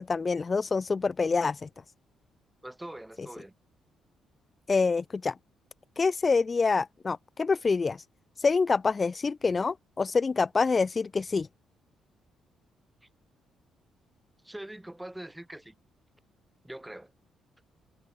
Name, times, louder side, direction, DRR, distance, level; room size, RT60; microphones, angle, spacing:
voice 1, 0.0-1.7 4.7-5.4 6.0-8.0 8.4-11.5, left 4 dB, 30° left, 0.5 m, -26 dB
voice 2, 2.6-3.5 14.4-15.7 16.6-17.1, right 1 dB, 10° right, 1.5 m, -43 dB
cardioid pair, 90°, 0 cm